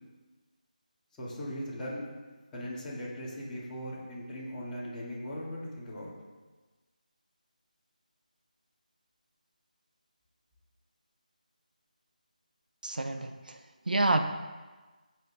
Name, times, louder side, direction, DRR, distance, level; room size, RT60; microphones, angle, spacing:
voice 1, 1.2-2.1 2.5-6.1, equal, 10° left, -11 dB, 3.5 m, -39 dB
voice 2, 12.8-13.6 13.9-14.2, right 2 dB, 80° right, 6 dB, 1.2 m, -28 dB
17.0 x 7.5 x 4.0 m, 1.3 s
figure-of-eight pair, 165°, 5 cm